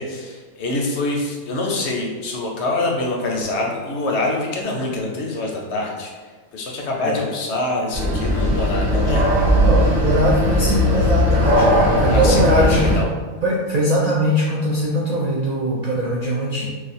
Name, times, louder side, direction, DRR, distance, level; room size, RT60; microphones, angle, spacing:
voice 1, 0.0-6.1 6.5-9.2 12.1-13.1, left 2 dB, 65° left, -1 dB, 0.8 m, -25 dB
sound 1, 7.9-13.0, equal, 50° right, 0.9 m, -18 dB
voice 2, 9.6-13.0 13.4-16.7, right 1 dB, 65° right, -5 dB, 0.4 m, -21 dB
2.5 x 2.4 x 4.1 m, 1.4 s
omnidirectional pair, 1.4 m